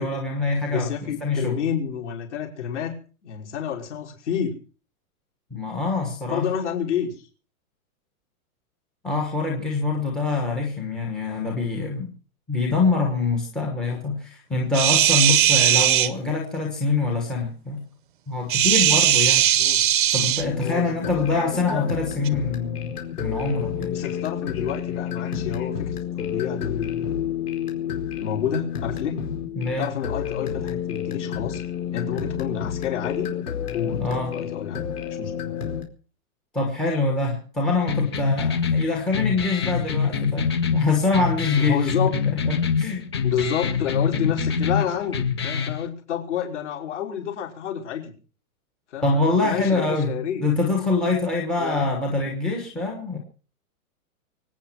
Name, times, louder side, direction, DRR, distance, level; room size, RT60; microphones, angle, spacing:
voice 1, 0.0-1.6 5.5-6.5 9.0-12.1 12.5-17.8 18.3-19.4 20.1-23.9 29.6-29.9 34.0-34.3 36.5-41.9 42.3-43.0 49.0-53.2, left 3 dB, ahead, 4 dB, 1.1 m, -25 dB
voice 2, 0.7-3.0 3.2-4.6 6.3-7.2 19.6-19.8 20.6-20.8 21.3-21.9 23.9-27.2 28.2-29.2 29.8-31.6 31.9-33.3 33.7-34.9 35.2-35.5 41.5-42.1 43.2-48.1 48.9-50.4 51.6-51.9, left 8 dB, 50° left, 1 dB, 5.7 m, -29 dB
sound 1, 14.7-16.1 18.5-20.4 22.2-22.3, right 11 dB, 35° right, 0.9 m, -18 dB
sound 2, 20.4-35.8, left 9 dB, 80° left, 4.8 m, -30 dB
sound 3, 37.9-45.8, left 6 dB, 20° left, 0.7 m, -25 dB
24.0 x 9.5 x 5.9 m, 0.40 s
hypercardioid pair, 180°, 45 cm